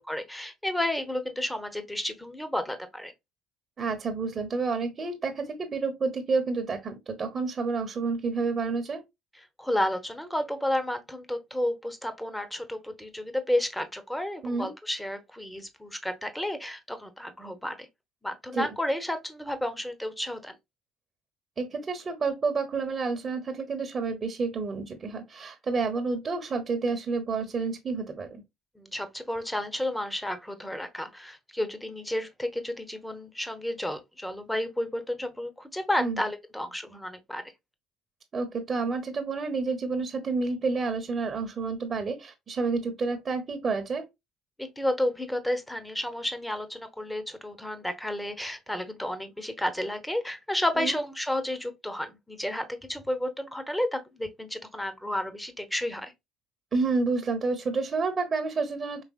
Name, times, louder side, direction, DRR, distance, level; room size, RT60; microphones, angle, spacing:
voice 1, 0.1-3.1 9.6-17.9 18.2-20.5 28.8-37.4 44.6-56.1, left 1 dB, 5° left, 0.9 m, -31 dB
voice 2, 3.8-9.0 14.4-14.7 18.5-18.7 21.6-28.4 36.0-36.2 38.3-44.0 50.8-51.0 56.7-59.0, right 4 dB, 35° right, 1.0 m, -29 dB
4.9 x 3.2 x 2.4 m
supercardioid pair, 75°, 0 cm